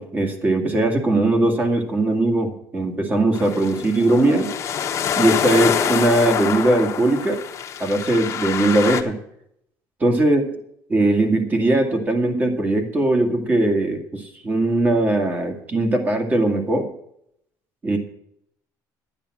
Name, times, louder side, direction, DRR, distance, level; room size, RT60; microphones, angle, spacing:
voice 1, 0.0-4.5 5.2-7.4 7.8-9.2 10.0-10.4 10.9-16.9 17.8-18.0, right 2 dB, 25° right, 4 dB, 2.1 m, -20 dB
sound 1, 3.3-9.0, left 8 dB, 40° left, 1.2 m, -25 dB
12.0 x 8.9 x 6.2 m, 0.74 s
cardioid pair, 150°, 7 cm